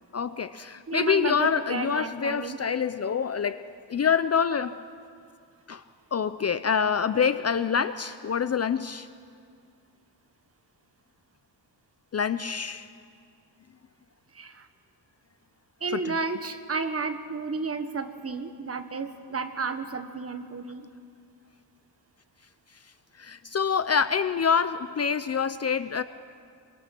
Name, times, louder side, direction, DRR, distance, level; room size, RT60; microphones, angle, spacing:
voice 1, 0.1-4.8 5.7-5.8 6.1-9.1 12.1-12.9 15.9-16.1 23.2-26.0, left 6 dB, 40° left, 13 dB, 0.5 m, -26 dB
voice 2, 0.9-2.6 14.3-14.7 15.8-20.9, right 4 dB, 35° right, 8 dB, 1.4 m, -32 dB
25.5 x 24.5 x 6.0 m, 2.3 s
wide cardioid pair, 160°, 42 cm